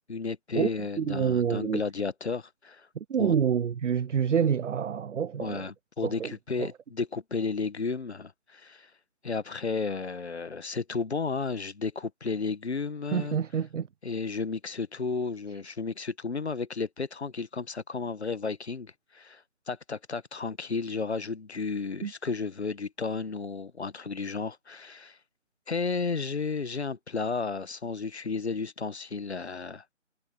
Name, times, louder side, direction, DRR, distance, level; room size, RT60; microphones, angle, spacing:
voice 1, 0.1-2.9 3.2-3.3 5.4-8.9 9.2-13.4 14.0-25.2 25.7-29.8, left 4 dB, 60° left, 1.3 m, -33 dB
voice 2, 1.0-1.8 3.0-5.7 6.0-6.3 6.6-6.7 13.1-13.9 22.0-22.1, right 7 dB, 70° right, 0.6 m, -27 dB
figure-of-eight pair, 175°, 38 cm